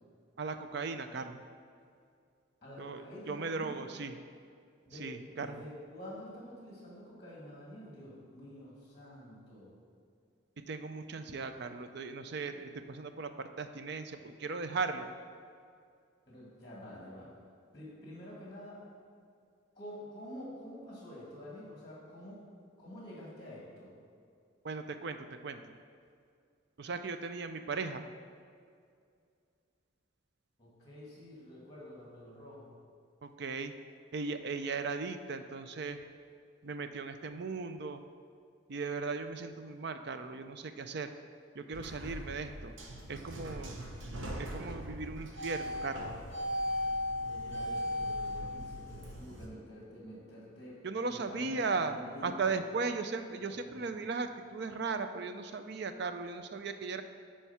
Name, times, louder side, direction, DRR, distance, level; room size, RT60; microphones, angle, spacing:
voice 1, 0.4-1.4 2.8-4.1 5.0-5.6 10.7-15.1 24.6-25.7 26.8-28.1 33.2-33.7 34.1-36.0 36.6-38.0 38.7-41.1 41.6-42.7 43.1-43.8 44.4-46.2 50.8-52.0 52.2-57.0, right 4 dB, 55° right, 9 dB, 0.5 m, -37 dB
voice 2, 2.6-3.9 4.9-9.7 11.2-11.5 16.3-17.3 17.7-18.8 19.7-22.5 22.8-23.9 30.6-32.8 47.2-50.8 51.1-52.6 53.6-53.9, equal, 20° left, -6 dB, 2.0 m, -48 dB
sound 1, 41.7-49.5, left 1 dB, 75° right, 1.0 m, -38 dB
9.2 x 4.5 x 5.6 m, 2.3 s
head